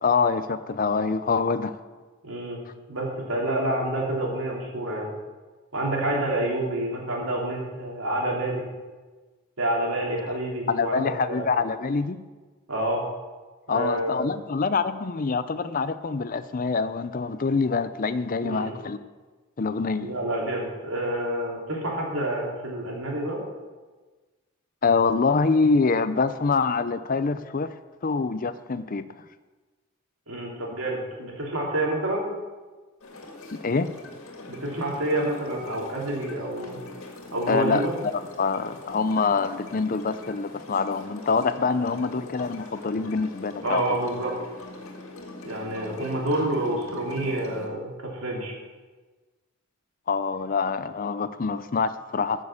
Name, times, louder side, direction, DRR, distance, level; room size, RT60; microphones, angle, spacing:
voice 1, 0.0-1.8 10.3-10.4 10.7-12.2 13.7-19.0 19.6-20.1 24.8-27.7 28.0-29.1 33.5-33.9 37.5-37.9 38.4-43.8 50.1-52.4, left 4 dB, 40° left, 13 dB, 0.5 m, -25 dB
voice 2, 2.2-2.6 2.9-5.1 5.7-8.6 9.6-11.4 12.7-13.0 13.7-14.2 18.4-18.7 20.0-23.4 30.3-32.2 34.5-36.8 37.3-37.9 43.6-44.3 45.4-48.5, right 1 dB, 75° right, -2 dB, 3.2 m, -28 dB
sound 1, 33.0-47.7, left 2 dB, 75° left, 2.0 m, -43 dB
13.5 x 6.4 x 7.1 m, 1.3 s
head